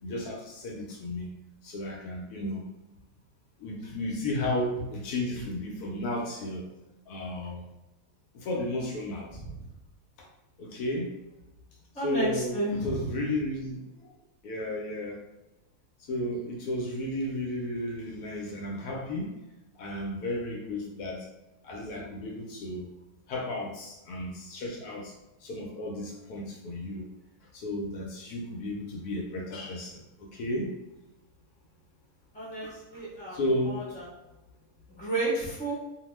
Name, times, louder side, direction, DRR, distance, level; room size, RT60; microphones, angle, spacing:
voice 1, 0.0-1.3 1.6-2.6 3.6-6.7 7.1-7.7 8.3-9.4 10.2-10.3 10.6-11.1 12.0-14.1 14.4-15.2 16.0-19.4 19.7-21.3 21.6-22.9 23.3-25.1 25.4-27.1 27.5-30.8 33.3-33.9, left 1 dB, 75° left, -1 dB, 1.1 m, -33 dB
voice 2, 9.3-9.6 11.9-13.1 32.3-34.1 35.0-35.7, right 2 dB, 5° left, -7 dB, 0.7 m, -32 dB
2.8 x 2.1 x 3.1 m, 0.99 s
omnidirectional pair, 1.7 m